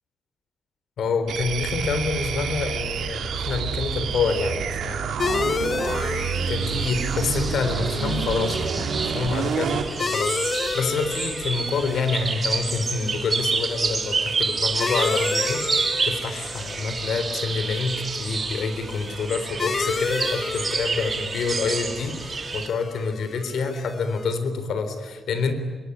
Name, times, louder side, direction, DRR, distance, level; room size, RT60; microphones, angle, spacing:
voice 1, 1.0-5.2 6.5-25.5, left 4 dB, 75° left, 9 dB, 3.7 m, -27 dB
sound 1, 1.3-9.9, right 7 dB, 85° right, 2.9 m, -28 dB
sound 2, 5.2-24.3, left 4 dB, 35° left, 1.2 m, -32 dB
sound 3, 6.6-22.7, right 4 dB, 35° right, 2.8 m, -29 dB
26.0 x 23.0 x 10.0 m, 1.5 s
wide cardioid pair, 140°, 0 cm